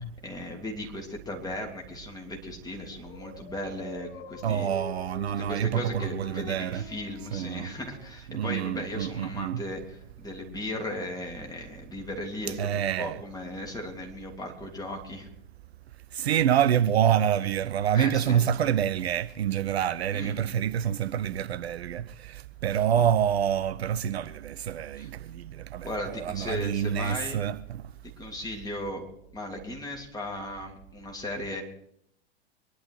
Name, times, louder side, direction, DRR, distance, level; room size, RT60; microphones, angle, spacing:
voice 1, 0.2-4.7 5.4-15.3 17.9-18.5 20.1-20.5 22.9-23.1 24.9-25.1 25.8-27.4 28.0-29.1 29.3-31.6, left 1 dB, 10° left, 3.1 m, -37 dB
Dog, 2.8-8.4, left 5 dB, 40° left, 1.9 m, -46 dB
voice 2, 4.4-6.8 7.3-7.7 8.3-9.6 12.6-13.2 16.1-27.8, right 9 dB, 65° right, 0.7 m, -27 dB
23.5 x 11.5 x 4.6 m
figure-of-eight pair, 95°, 34 cm